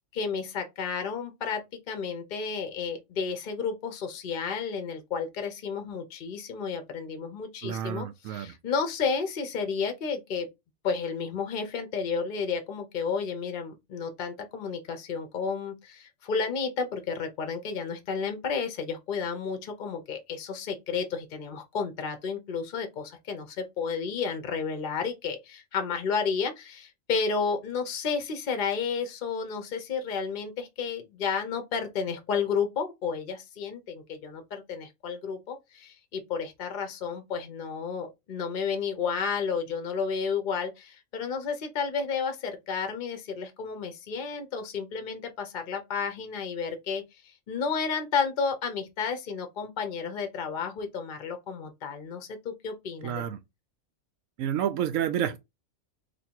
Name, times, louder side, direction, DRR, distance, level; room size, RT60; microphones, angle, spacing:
voice 1, 0.1-1.6 1.9-10.5 10.8-53.2, left 5 dB, 50° left, 0.7 m, -32 dB
voice 2, 7.6-8.5 53.0-53.4 54.4-55.4, right 10 dB, 90° right, 1.0 m, -29 dB
3.0 x 2.6 x 4.3 m
omnidirectional pair, 1.3 m